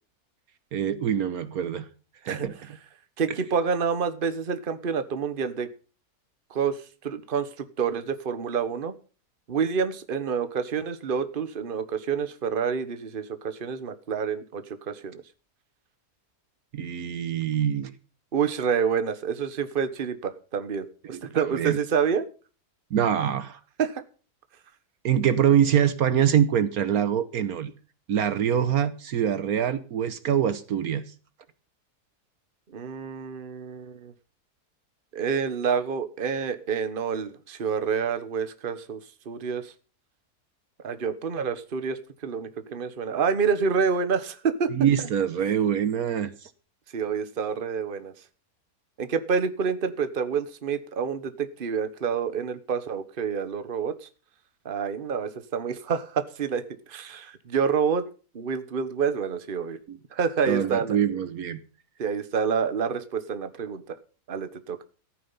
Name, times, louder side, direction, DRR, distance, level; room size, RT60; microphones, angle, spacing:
voice 1, 0.7-1.9 2.2-2.8 16.7-17.9 21.0-21.8 22.9-23.6 25.0-27.7 28.1-31.0 44.8-46.5 59.9-60.0 60.5-61.6, right 9 dB, 70° right, 1.4 m, -24 dB
voice 2, 3.2-5.7 6.5-7.5 7.8-8.9 9.5-15.2 18.3-22.3 23.8-24.0 32.7-34.1 35.1-39.0 39.2-39.7 40.8-44.7 46.9-48.1 49.0-54.1 54.6-56.6 56.9-58.0 58.3-59.8 60.1-61.0 62.0-64.0 64.3-64.8, right 6 dB, 35° right, 1.2 m, -28 dB
14.5 x 9.3 x 5.6 m
omnidirectional pair, 1.7 m